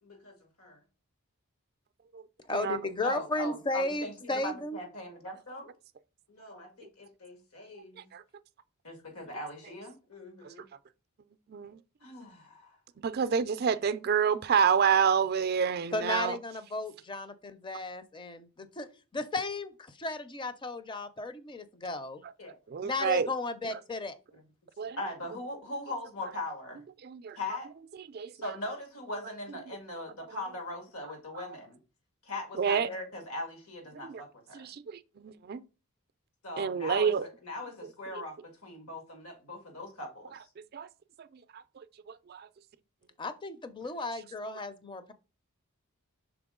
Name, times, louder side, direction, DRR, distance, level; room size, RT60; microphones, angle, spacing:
voice 1, 0.0-0.8 3.0-5.7 6.3-8.1 8.8-10.6 12.0-12.8 22.4-22.6 23.0-23.2 24.3-24.4 24.9-26.8 27.4-27.7 28.4-31.8 32.2-34.7 36.4-38.4 38.6-40.3, left 1 dB, 85° left, 2.0 m, -40 dB
voice 2, 2.5-4.8 15.9-18.9 19.1-22.2 22.8-24.1 43.2-45.1, left 2 dB, 20° left, 0.5 m, -34 dB
voice 3, 11.5-11.8 13.0-16.4 22.7-23.3 23.7-23.8 24.8-25.0 27.0-27.4 28.1-28.3 32.6-32.9 34.0-34.2 34.5-35.6 36.6-37.3 38.1-38.2 40.7-40.9 41.2-41.3 41.5-41.6 42.1-42.5, right 7 dB, 45° right, 0.4 m, -28 dB
6.0 x 4.2 x 3.7 m
head